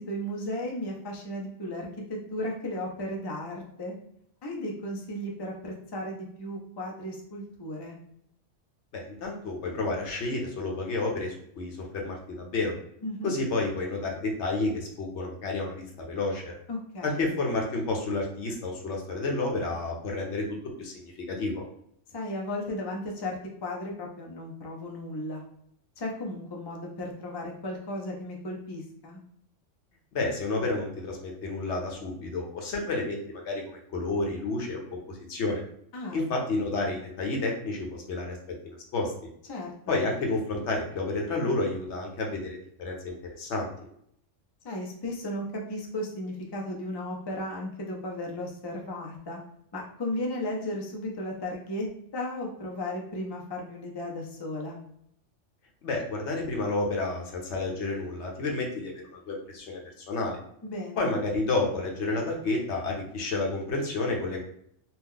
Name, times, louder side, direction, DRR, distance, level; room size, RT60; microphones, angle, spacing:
voice 1, 0.0-3.9 4.4-8.0 13.0-13.3 16.7-17.3 22.1-25.4 26.0-29.2 35.9-36.2 39.5-40.0 44.6-49.4 49.7-51.9 52.1-54.8 60.6-61.1, left 1 dB, 35° left, -1 dB, 0.4 m, -35 dB
voice 2, 8.9-12.7 13.2-16.5 17.0-20.4 20.8-21.6 30.1-34.8 35.1-35.6 36.1-38.4 38.6-39.1 39.9-43.7 55.8-60.4 61.0-64.4, left 2 dB, 70° left, 0 dB, 1.0 m, -30 dB
2.8 x 2.2 x 3.6 m, 0.70 s
omnidirectional pair, 1.3 m